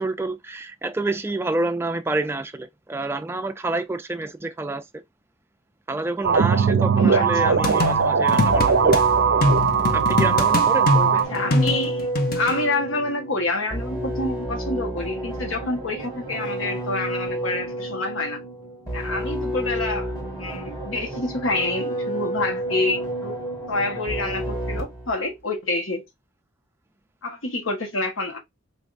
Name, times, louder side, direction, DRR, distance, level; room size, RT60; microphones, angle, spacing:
voice 1, 0.0-5.0 5.9-9.0 9.9-11.3, right 2 dB, 10° right, 0.3 m, -28 dB
sound 1, 6.2-11.2, right 6 dB, 70° right, 0.5 m, -19 dB
voice 2, 7.0-7.6 11.1-18.4 18.9-23.3 23.7-26.0 27.2-28.4, left 2 dB, 85° left, 1.2 m, -27 dB
sound 2, 7.6-9.0 9.4-12.5, left 2 dB, 45° left, 0.7 m, -23 dB
sound 3, 8.5-25.1, right 1 dB, 20° left, 1.7 m, -30 dB
3.9 x 3.5 x 2.5 m
head